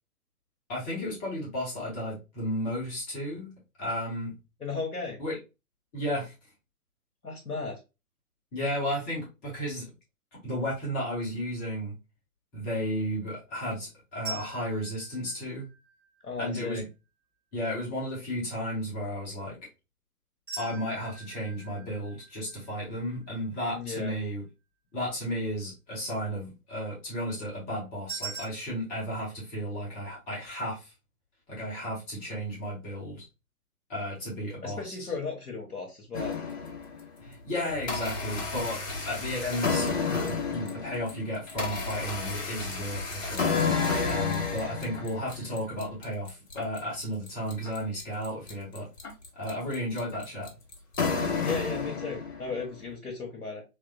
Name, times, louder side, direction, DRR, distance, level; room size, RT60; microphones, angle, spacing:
voice 1, 0.7-4.3 5.2-5.4 5.9-6.3 8.5-9.9 10.3-11.9 12.5-15.7 16.4-16.8 17.5-19.6 20.6-24.4 24.9-30.9 31.5-33.2 33.9-35.1 37.2-43.4 44.0-48.9 49.3-50.5, equal, 20° left, -5 dB, 1.6 m, -33 dB
voice 2, 4.6-5.2 7.2-7.8 16.2-16.8 23.7-24.1 34.6-36.4 51.4-53.6, left 4 dB, 80° left, -1 dB, 1.1 m, -35 dB
sound 1, 14.2-16.3 20.5-23.6 28.1-28.4, right 5 dB, 5° right, 1.5 m, -42 dB
sound 2, 36.1-37.1 37.5-52.6, left 4 dB, 45° left, 1.2 m, -31 dB
3.5 x 3.3 x 2.3 m, 0.26 s
figure-of-eight pair, 125°, 45 cm